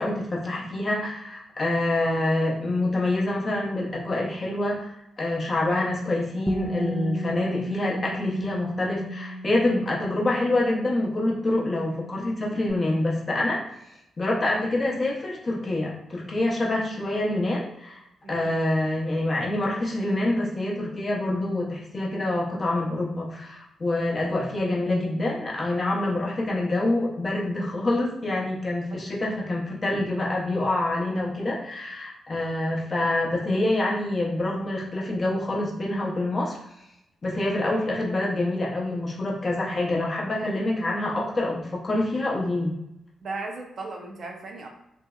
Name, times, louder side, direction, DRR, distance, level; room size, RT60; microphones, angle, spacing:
voice 1, 0.0-13.6 14.2-18.0 18.3-36.6 37.2-42.7, left 2 dB, 40° left, -3 dB, 0.8 m, -26 dB
Bass guitar, 6.5-12.7, equal, 5° right, 0.4 m, -35 dB
voice 2, 43.2-44.7, right 3 dB, 65° right, 1 dB, 0.5 m, -36 dB
2.6 x 2.1 x 2.3 m, 0.84 s
supercardioid pair, 50°, 0 cm